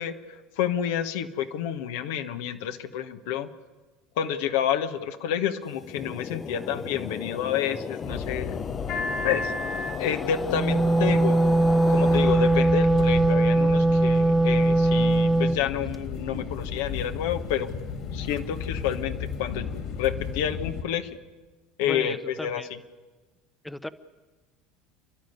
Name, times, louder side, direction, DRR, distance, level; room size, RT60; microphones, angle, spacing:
voice 1, 0.0-3.5 4.2-8.6 9.2-9.5 10.0-11.4 11.9-17.7 18.1-19.7 20.0-21.2 21.8-22.6, left 9 dB, 70° left, 7 dB, 1.3 m, -29 dB
sound 1, 5.7-13.1, left 6 dB, 35° left, 0.7 m, -35 dB
sound 2, 8.0-20.8, left 5 dB, 55° left, 2.9 m, -34 dB
Wind instrument woodwind instrument, 10.4-15.6, right 2 dB, 15° right, 1.0 m, -20 dB
voice 2, 21.8-22.7 23.6-23.9, left 1 dB, 10° left, 12 dB, 1.0 m, -35 dB
30.0 x 11.5 x 9.6 m, 1.3 s
hypercardioid pair, 75°, 0 cm